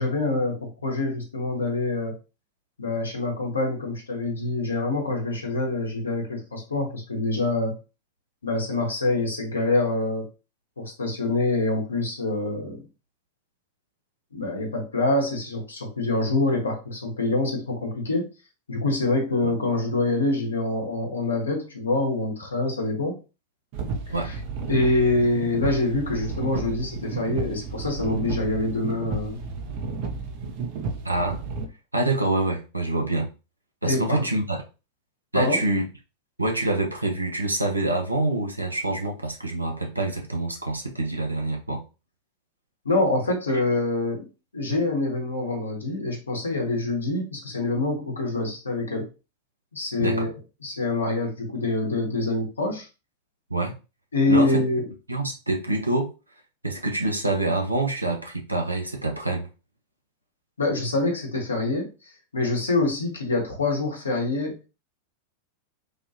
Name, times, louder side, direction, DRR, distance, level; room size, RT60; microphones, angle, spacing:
voice 1, 0.0-2.2 2.8-7.8 8.4-10.3 10.8-12.8 14.3-18.3 18.7-23.2 24.1-24.3 24.7-29.4 33.8-34.3 35.3-35.6 42.8-44.3 44.5-49.1 49.7-50.3 50.6-52.9 54.1-54.9 60.6-61.9 62.3-64.6, left 2 dB, 75° left, 1 dB, 0.9 m, -25 dB
sound 1, 23.7-31.7, right 4 dB, 45° right, 0.6 m, -32 dB
voice 2, 31.0-31.4 31.9-33.3 33.8-34.6 35.3-35.8 36.4-41.8 50.0-50.3 53.5-53.7 54.3-54.6 55.1-56.1 56.6-59.5, right 2 dB, 85° right, 1 dB, 0.7 m, -26 dB
3.3 x 2.3 x 2.6 m, 0.31 s
figure-of-eight pair, 90°, 0 cm